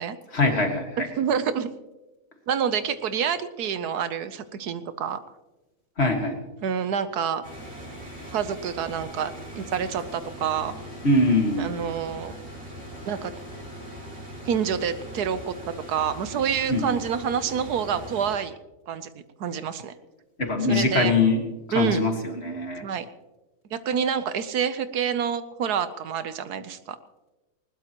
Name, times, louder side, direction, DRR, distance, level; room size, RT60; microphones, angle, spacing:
voice 1, 0.3-1.1 6.0-6.4 11.0-11.7 16.7-17.0 20.4-21.4 21.7-22.9, left 2 dB, 40° left, 3 dB, 2.1 m, -23 dB
voice 2, 1.0-1.7 2.5-5.2 6.6-7.4 8.3-10.7 11.6-12.3 13.0-13.3 14.4-15.5 15.9-18.5 18.9-19.1 19.4-19.9 20.7-21.1 21.7-22.0 22.8-23.1 23.7-27.0, right 7 dB, 75° right, 12 dB, 1.3 m, -27 dB
sound 1, 7.4-18.4, equal, 40° right, 6.1 m, -40 dB
20.0 x 20.0 x 3.0 m, 1.1 s
omnidirectional pair, 1.7 m